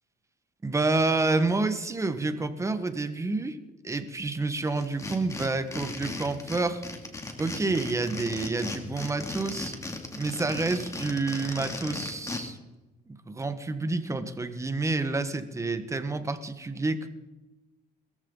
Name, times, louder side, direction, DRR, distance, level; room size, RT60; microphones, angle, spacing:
voice 1, 0.6-3.6 3.8-6.8 7.4-9.7 10.2-12.6 13.1-17.1, right 3 dB, 15° right, 9 dB, 1.5 m, -29 dB
sound 1, 4.7-12.4, left 2 dB, 20° left, 2.7 m, -37 dB
22.0 x 14.5 x 4.0 m, 1.1 s
cardioid pair, 110°, 17 cm